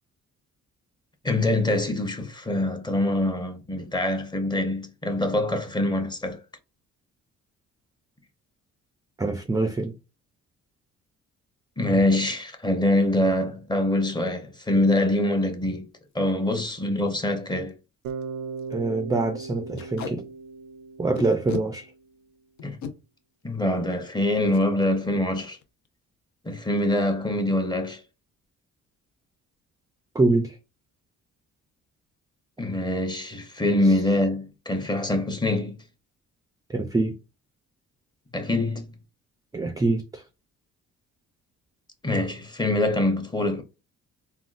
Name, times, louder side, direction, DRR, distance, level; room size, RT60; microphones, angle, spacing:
voice 1, 1.2-6.4 11.8-15.9 16.1-17.7 22.6-22.8 23.4-25.6 26.4-28.0 32.6-35.8 38.3-38.9 42.0-43.6, left 1 dB, 15° left, 0.7 m, -24 dB
voice 2, 9.2-10.0 18.7-20.2 21.0-21.9 30.1-30.6 36.7-37.2 39.5-40.2, right 3 dB, 15° right, 0.3 m, -25 dB
Packing tape duct tape, 16.1-16.3 16.8-16.9 17.1-17.2 17.7-17.8 18.1-18.2 18.6-18.7 19.8-20.1 21.2-21.7 22.6-22.9 24.5-24.7 25.0-25.2 25.4-25.9, left 6 dB, 70° left, 0.7 m, -35 dB
Bass guitar, 18.0-22.1, right 5 dB, 90° right, 0.5 m, -38 dB
3.5 x 2.3 x 2.4 m
cardioid pair, 90°, 30 cm